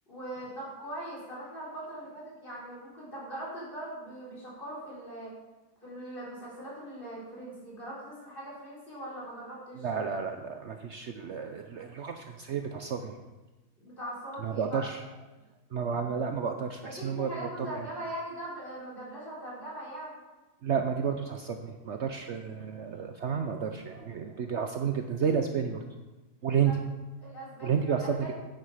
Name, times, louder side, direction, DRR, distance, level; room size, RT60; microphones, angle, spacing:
voice 1, 0.1-5.3 5.8-9.9 13.8-14.9 16.8-20.2 26.5-26.8 27.2-28.3, right 1 dB, 35° left, -6 dB, 4.1 m, -41 dB
voice 2, 9.8-13.2 14.4-15.0 15.7-17.9 20.6-25.8 26.4-26.8 27.6-28.2, right 7 dB, 60° right, 6 dB, 0.8 m, -31 dB
9.5 x 8.9 x 4.9 m, 1.1 s
omnidirectional pair, 1.7 m